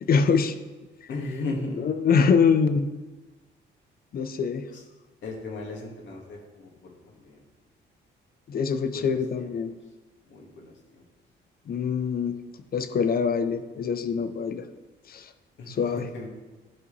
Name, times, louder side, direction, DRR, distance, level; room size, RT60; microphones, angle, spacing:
voice 1, 0.0-0.6 1.8-2.9 4.1-4.7 8.5-9.7 11.7-12.4 12.7-14.7 15.1-15.3 15.7-16.1, left 5 dB, 50° left, 10 dB, 0.7 m, -24 dB
voice 2, 1.1-1.8 4.7-4.8 5.2-7.4 8.9-9.5 10.3-11.0 15.6-16.3, left 2 dB, 70° left, -1 dB, 2.0 m, -36 dB
12.0 x 4.8 x 3.3 m, 1.2 s
cardioid pair, 90°, 20 cm